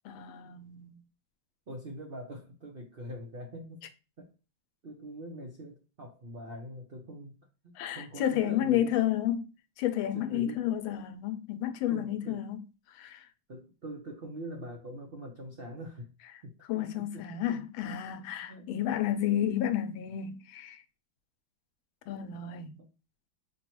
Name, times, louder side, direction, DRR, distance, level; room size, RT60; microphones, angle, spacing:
voice 1, 0.0-1.0 7.8-9.5 9.8-12.6 12.9-13.3 16.7-20.8 22.1-22.8, left 11 dB, 90° left, 1.4 m, -31 dB
voice 2, 1.7-3.9 4.2-4.3 4.8-7.4 7.6-9.0 10.1-10.7 11.9-12.5 13.5-16.1 16.4-17.6 18.4-18.7 22.8-22.9, right 1 dB, 55° right, 0.6 m, -43 dB
5.5 x 2.3 x 3.0 m
omnidirectional pair, 2.1 m